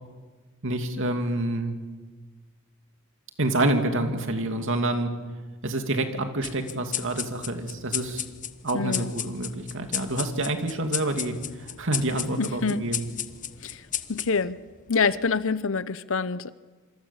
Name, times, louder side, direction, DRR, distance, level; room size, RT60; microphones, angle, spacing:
voice 1, 0.6-1.8 3.4-5.1 5.6-8.2 8.6-13.1, right 2 dB, 65° right, 6 dB, 2.7 m, -27 dB
sound 1, 6.4-15.3, left 10 dB, 40° left, 1.1 m, -35 dB
voice 2, 8.7-9.1 12.4-12.9 13.6-13.8 14.1-14.6 14.9-16.5, left 4 dB, 65° left, 16 dB, 0.8 m, -26 dB
27.0 x 25.5 x 7.4 m, 1.3 s
head